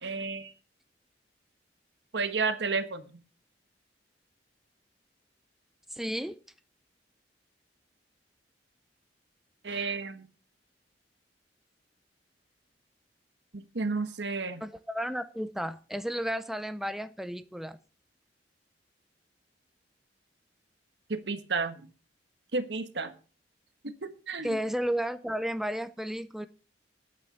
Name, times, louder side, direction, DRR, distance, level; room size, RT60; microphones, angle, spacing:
voice 1, 0.0-0.5 2.1-3.1 9.6-10.3 13.5-14.6 21.1-21.8 22.5-23.2 23.8-24.6, right 4 dB, 75° right, 1.3 m, -32 dB
voice 2, 5.9-6.3 14.6-17.8 24.4-26.5, equal, ahead, 0.6 m, -33 dB
9.1 x 6.7 x 7.7 m
head